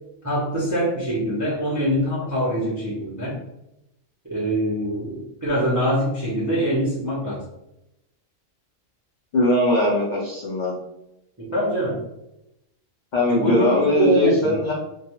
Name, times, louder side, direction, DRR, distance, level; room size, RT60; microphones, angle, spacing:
voice 1, 0.2-3.4 4.3-7.4 11.4-12.0 13.3-14.5, right 1 dB, 30° right, -8 dB, 0.3 m, -23 dB
voice 2, 9.3-10.7 13.1-14.7, left 2 dB, 65° left, -5 dB, 0.4 m, -20 dB
2.2 x 2.2 x 2.8 m, 0.86 s
omnidirectional pair, 1.4 m